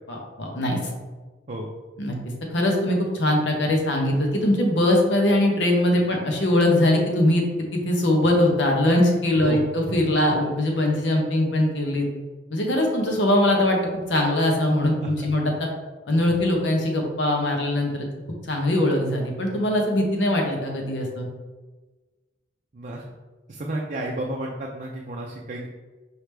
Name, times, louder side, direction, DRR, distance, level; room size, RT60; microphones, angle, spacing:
voice 1, 0.1-0.8 2.0-2.2 2.5-7.4 7.7-12.1 12.5-15.7 16.1-18.1 18.5-21.3, left 1 dB, 80° left, 1 dB, 1.0 m, -21 dB
voice 2, 22.7-23.0 23.5-25.7, right 1 dB, 45° right, -2 dB, 0.5 m, -32 dB
4.7 x 3.3 x 3.3 m, 1.3 s
head